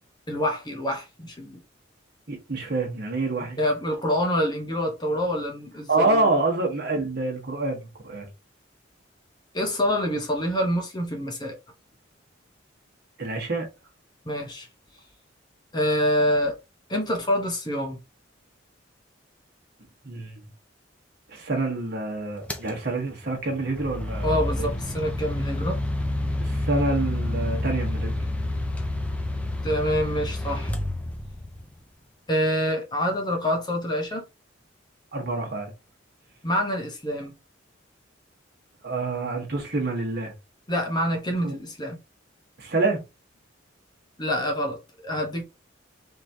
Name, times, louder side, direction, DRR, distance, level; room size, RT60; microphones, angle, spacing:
voice 1, 0.3-1.6 3.6-6.3 9.5-11.5 14.2-14.7 15.7-16.5 16.9-18.0 24.2-25.8 29.6-30.7 32.3-34.3 36.4-37.3 40.7-42.0 44.2-45.4, equal, 20° left, 0.9 m, -26 dB
voice 2, 2.3-3.6 5.9-8.3 13.2-13.7 20.0-20.4 21.3-24.7 26.4-28.1 35.1-35.7 38.8-40.3 41.4-41.5 42.6-43.0, right 2 dB, 55° right, 1.2 m, -27 dB
sound 1, 22.5-22.7 23.6-31.6, left 1 dB, 5° left, 0.5 m, -29 dB
3.6 x 3.0 x 2.7 m
head